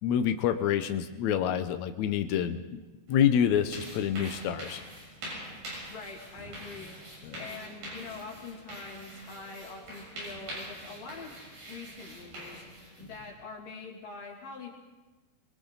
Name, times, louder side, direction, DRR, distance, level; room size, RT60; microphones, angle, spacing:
voice 1, 0.0-2.8 3.1-4.8 7.2-7.4, left 9 dB, 80° left, 8 dB, 1.6 m, -27 dB
sound 1, 3.1-13.3, right 1 dB, 70° right, 8.9 m, -44 dB
voice 2, 5.9-7.0 7.4-11.4 11.7-14.7, left 4 dB, 60° left, -1 dB, 4.3 m, -44 dB
28.0 x 23.5 x 4.0 m, 1.2 s
omnidirectional pair, 4.4 m